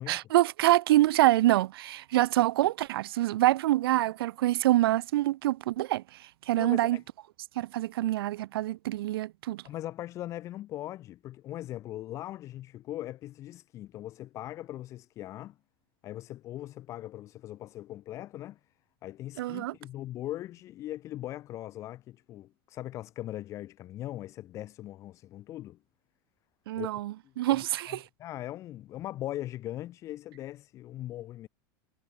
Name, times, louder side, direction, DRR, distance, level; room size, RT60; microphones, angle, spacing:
voice 1, 0.1-6.0 6.5-7.0 7.6-9.6 19.4-19.7 26.7-28.0, right 15 dB, 85° right, 0.7 m, -25 dB
voice 2, 6.6-7.0 9.6-15.6 16.0-18.6 19.0-25.8 26.7-31.5, left 14 dB, 25° left, 2.3 m, -40 dB
supercardioid pair, 180°, 12 cm